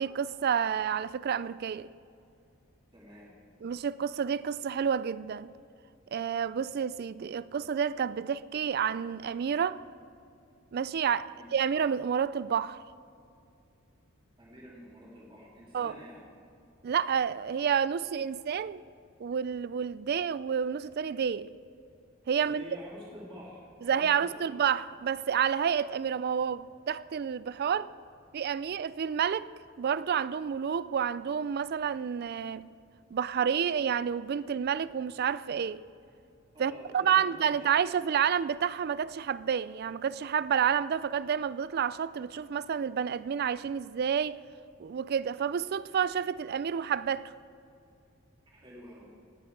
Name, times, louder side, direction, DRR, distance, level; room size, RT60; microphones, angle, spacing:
voice 1, 0.0-1.9 3.6-5.5 6.1-9.8 10.7-12.8 15.7-15.9 16.8-18.8 19.2-21.5 22.3-22.6 23.8-27.9 28.3-29.5 29.8-32.7 33.1-35.8 36.6-44.4 44.8-47.3, right 7 dB, 45° right, 0.3 m, -29 dB
voice 2, 2.9-3.3 11.3-11.5 14.4-16.2 22.3-24.5 36.5-37.8 48.5-49.1, equal, 25° right, 2.8 m, -48 dB
18.5 x 8.0 x 4.7 m
head